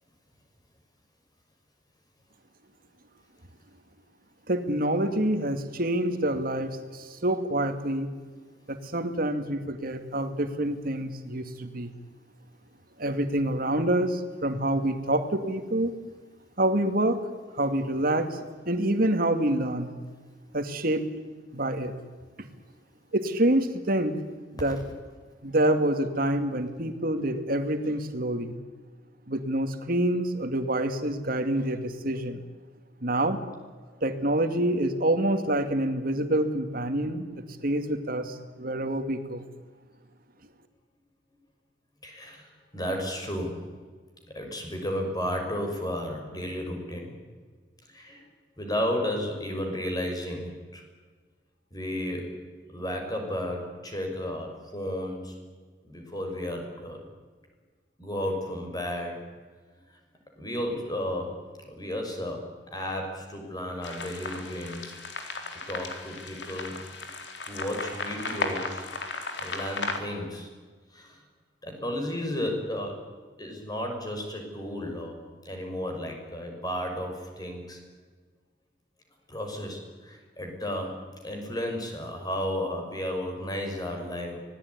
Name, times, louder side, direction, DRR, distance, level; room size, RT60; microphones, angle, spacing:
voice 1, 4.5-8.1 8.7-11.9 13.0-15.9 16.6-17.2 17.6-18.4 18.7-19.9 20.5-21.1 21.5-21.9 23.1-24.2 24.5-24.8 25.4-28.6 29.3-32.4 33.0-33.4 34.0-39.4, right 1 dB, 55° right, 8 dB, 2.4 m, -27 dB
voice 2, 42.0-42.5 42.7-43.6 44.3-47.2 47.9-48.2 48.6-50.8 51.7-52.3 52.7-55.3 55.8-57.0 58.0-59.2 60.4-61.4 61.6-62.5 62.7-64.8 65.5-66.8 67.5-68.8 69.4-70.5 70.9-71.2 71.6-73.0 73.4-75.2 75.4-77.8 79.3-81.0 81.2-84.4, left 1 dB, 25° left, 3 dB, 6.1 m, -33 dB
sound 1, 63.8-70.0, left 3 dB, 85° left, 3.7 m, -35 dB
25.5 x 18.5 x 9.7 m, 1.5 s
head